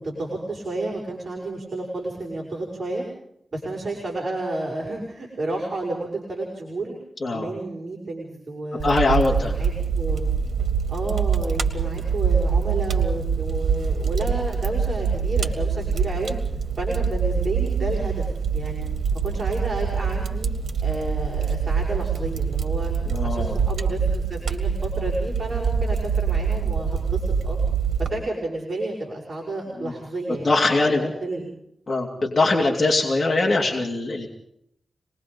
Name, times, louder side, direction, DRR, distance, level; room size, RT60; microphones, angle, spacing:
voice 1, 0.0-3.0 3.5-6.9 7.3-10.3 10.9-16.4 16.8-18.8 19.2-20.5 20.8-22.9 23.2-27.6 28.0-31.5, right 2 dB, 45° right, -3 dB, 6.3 m, -31 dB
voice 2, 7.2-7.5 8.8-9.5 23.1-23.6 29.8-29.9 30.4-31.1 31.9-34.3, left 2 dB, 40° left, -1 dB, 2.9 m, -22 dB
Fire, 8.8-28.1, right 6 dB, 85° right, 2.1 m, -24 dB
27.0 x 20.5 x 5.4 m, 0.75 s
wide cardioid pair, 115°, 0 cm